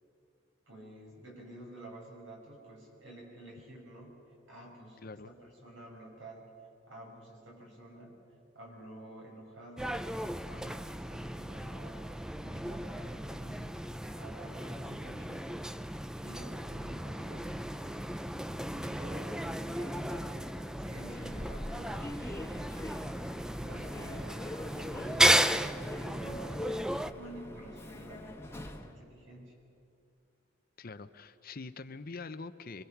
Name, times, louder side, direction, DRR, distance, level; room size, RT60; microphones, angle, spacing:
voice 1, 0.7-4.1 4.5-6.5 6.9-8.2 8.5-9.9 10.5-12.1 12.4-13.7 14.2-15.6 16.2-18.1 18.5-22.8 23.6-26.8 27.1-29.5, right 1 dB, 80° right, -1 dB, 6.3 m, -50 dB
sound 1, 9.8-27.1, right 1 dB, 5° right, 0.5 m, -34 dB
Human voice / Subway metro underground, 21.0-29.0, left 1 dB, 15° left, 1.3 m, -43 dB
voice 2, 30.8-32.8, left 3 dB, 50° left, 11 dB, 0.8 m, -44 dB
26.5 x 23.0 x 6.0 m, 2.5 s
head